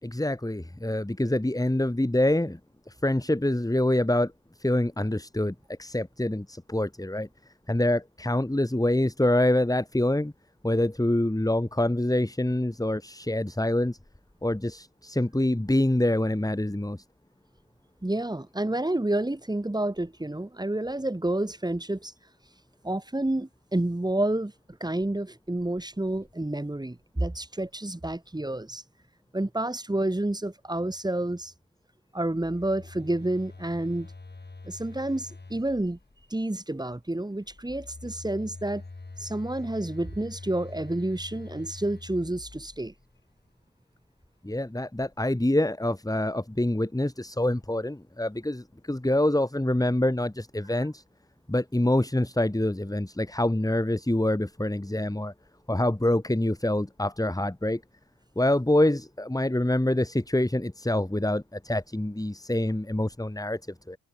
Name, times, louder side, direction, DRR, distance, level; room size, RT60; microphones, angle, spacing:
voice 1, 0.0-2.6 2.9-4.3 4.6-7.3 7.7-10.3 10.6-14.0 14.4-17.0 44.4-51.0 51.5-55.3 55.7-57.8 58.4-63.6 63.9-64.0, left 1 dB, 10° left, 5.5 m, -26 dB
voice 2, 18.0-22.1 22.8-24.5 24.8-28.8 29.3-31.5 32.1-34.1 34.7-36.0 36.3-38.8 39.2-42.9, right 1 dB, 10° right, 2.6 m, -29 dB
Telephone, 32.3-36.3 37.4-43.1, left 3 dB, 25° left, 7.2 m, -45 dB
hypercardioid pair, 45°, 38 cm